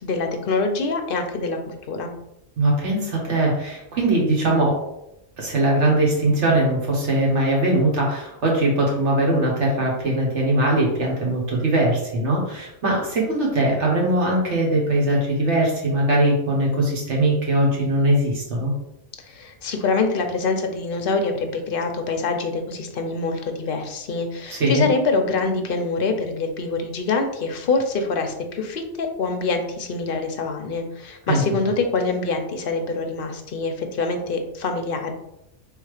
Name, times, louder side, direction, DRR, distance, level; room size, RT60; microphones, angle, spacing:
voice 1, 0.0-1.6 1.9-2.1 19.3-35.1, left 3 dB, 55° left, 5 dB, 0.7 m, -25 dB
voice 2, 2.6-4.8 5.4-18.7 24.5-24.9 31.3-31.4, right 1 dB, 60° right, -2 dB, 1.6 m, -21 dB
3.7 x 2.8 x 4.8 m, 0.83 s
omnidirectional pair, 1.4 m